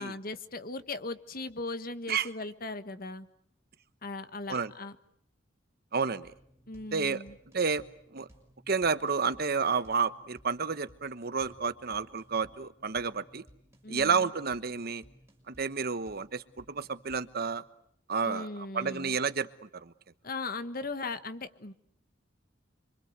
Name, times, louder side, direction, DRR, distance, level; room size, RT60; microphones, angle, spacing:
voice 1, 0.0-3.3 4.0-4.9 6.7-7.3 13.8-14.3 18.2-19.2 20.2-21.7, left 3 dB, 50° left, 11 dB, 1.6 m, -38 dB
voice 2, 5.9-6.3 6.9-7.2 7.5-7.8 8.1-8.3 8.7-13.4 13.9-15.0 15.5-17.6 18.1-18.5 18.7-19.5 19.7-19.9, right 5 dB, 55° right, 13 dB, 1.1 m, -30 dB
sound 1, 6.2-17.6, equal, 15° right, 6.2 m, -60 dB
27.5 x 25.5 x 8.1 m, 0.70 s
head